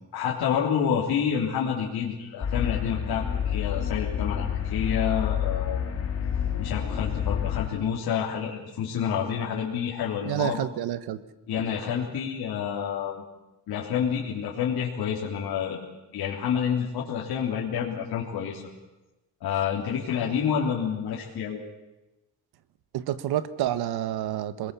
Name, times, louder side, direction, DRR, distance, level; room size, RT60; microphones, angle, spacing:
voice 1, 0.1-5.8 6.6-10.6 11.5-13.2 13.7-15.9 16.1-18.6 19.4-21.6, left 8 dB, 80° left, -4 dB, 3.6 m, -28 dB
sound 1, 2.4-7.7, left 9 dB, 40° left, 3.1 m, -28 dB
voice 2, 10.2-11.2 22.9-24.7, right 12 dB, 85° right, 14 dB, 1.4 m, -28 dB
27.0 x 21.0 x 7.0 m, 1.0 s
cardioid pair, 140°, 37 cm